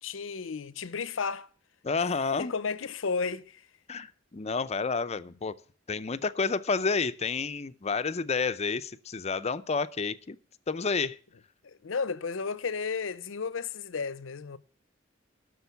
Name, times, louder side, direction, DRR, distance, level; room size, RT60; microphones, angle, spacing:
voice 1, 0.0-1.5 2.0-3.6 11.6-14.6, left 5 dB, 85° left, 0.7 m, -33 dB
voice 2, 1.8-2.5 3.9-5.5 5.9-10.4 10.7-11.2, left 4 dB, 35° left, 0.5 m, -30 dB
11.5 x 6.4 x 8.1 m
head